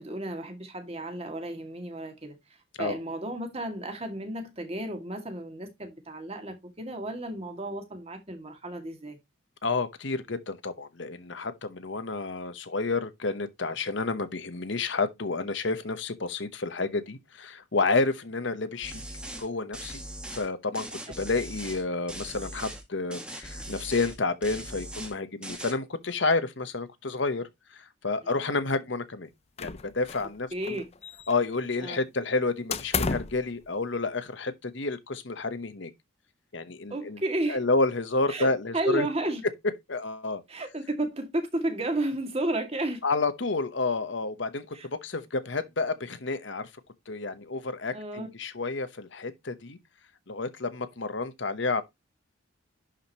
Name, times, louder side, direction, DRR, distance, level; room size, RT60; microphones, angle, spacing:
voice 1, 0.0-2.4 2.8-9.2 28.2-28.3 30.5-30.8 31.8-32.0 36.9-37.6 38.3-38.5 38.7-39.4 40.5-43.0 44.7-44.9 47.9-48.3, right 1 dB, 30° right, 2.1 m, -32 dB
voice 2, 9.6-19.0 19.4-20.0 20.3-20.9 21.2-27.5 28.0-29.3 29.6-30.8 31.3-35.9 36.5-37.2 37.5-39.1 39.9-40.4 43.0-46.7 47.1-49.8 50.3-51.8, left 3 dB, 60° left, 1.0 m, -30 dB
sound 1, 18.8-19.5 19.7-20.5 20.7-21.8 22.1-22.8 23.1-24.2 24.4-25.1 25.4-25.7, right 1 dB, 5° right, 1.5 m, -40 dB
sound 2, 29.6-30.4 30.6-31.6 32.7-33.4, left 5 dB, 30° left, 0.5 m, -32 dB
11.0 x 5.1 x 2.9 m
head